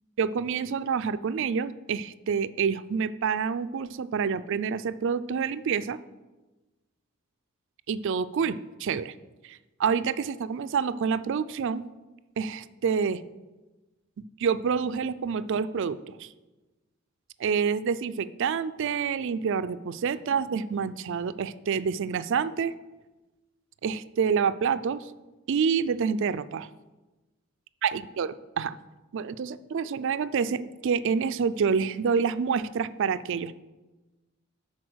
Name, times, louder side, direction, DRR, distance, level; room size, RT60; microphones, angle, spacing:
voice 1, 0.2-6.0 7.9-9.1 9.4-11.8 12.4-13.2 14.4-16.3 17.4-22.7 23.8-25.1 25.5-26.7 27.8-28.8 29.1-33.5, right 6 dB, 60° right, 14 dB, 0.4 m, -28 dB
11.0 x 4.2 x 6.2 m, 1.1 s
head